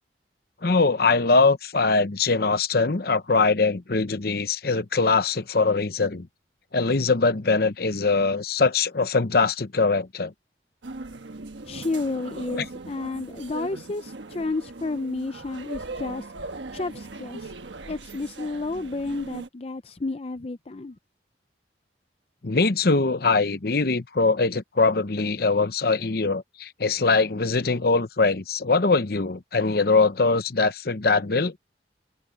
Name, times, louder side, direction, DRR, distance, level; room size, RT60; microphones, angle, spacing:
voice 1, 0.6-6.3 6.7-10.3 22.4-31.5, left 3 dB, 55° left, 0.9 m, -22 dB
sound 1, 10.8-19.5, right 3 dB, 85° right, 1.3 m, -39 dB
voice 2, 11.6-16.3 16.7-17.5 17.9-21.0, left 3 dB, 35° left, 0.5 m, -31 dB
head